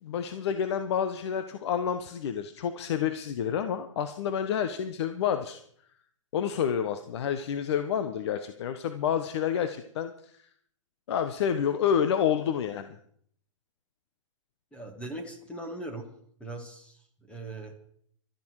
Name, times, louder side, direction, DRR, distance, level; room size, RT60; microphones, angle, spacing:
voice 1, 0.0-5.6 6.3-10.3 11.1-13.0, left 8 dB, 55° left, 9 dB, 1.3 m, -29 dB
voice 2, 14.7-16.1 16.4-17.0 17.3-17.7, right 2 dB, 5° left, 4 dB, 2.3 m, -39 dB
20.0 x 13.5 x 4.9 m, 0.64 s
hypercardioid pair, 135°, 17 cm